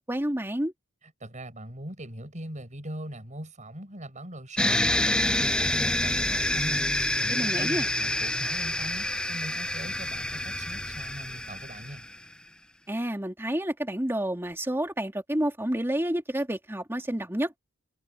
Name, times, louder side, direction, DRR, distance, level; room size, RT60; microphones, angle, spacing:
voice 1, 0.1-0.7 7.3-7.9 12.9-17.6, right 1 dB, 10° right, 2.6 m, -29 dB
voice 2, 1.2-12.0, right 1 dB, 35° right, 7.7 m, -41 dB
sound 1, 4.6-12.2, left 1 dB, 5° left, 0.6 m, -27 dB
head